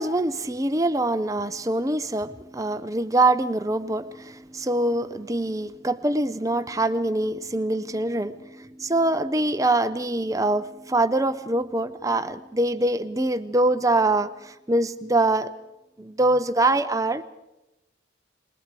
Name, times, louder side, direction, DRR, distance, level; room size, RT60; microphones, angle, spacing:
voice 1, 0.0-15.5 16.0-17.2, right 2 dB, 15° right, 11 dB, 0.7 m, -24 dB
27.0 x 20.5 x 4.9 m, 0.96 s
head